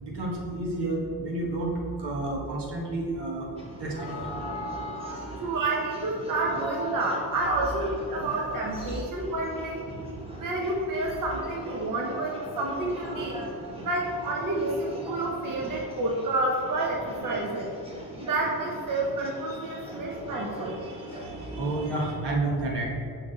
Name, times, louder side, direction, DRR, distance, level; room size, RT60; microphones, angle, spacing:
voice 1, 0.0-1.7 2.0-3.5 3.8-4.1 5.5-5.7 8.2-8.3 9.9-10.5 17.3-17.4 19.5-19.8 20.4-22.8, right 2 dB, 75° right, -2 dB, 1.4 m, -31 dB
sound 1, 3.6-22.1, right 1 dB, 15° right, 1.4 m, -40 dB
voice 2, 5.4-9.8 10.4-13.4 13.8-17.7 18.2-20.8, right 2 dB, 50° right, -2 dB, 1.0 m, -29 dB
5.9 x 5.9 x 4.1 m, 2.4 s
cardioid pair, 95°, 41 cm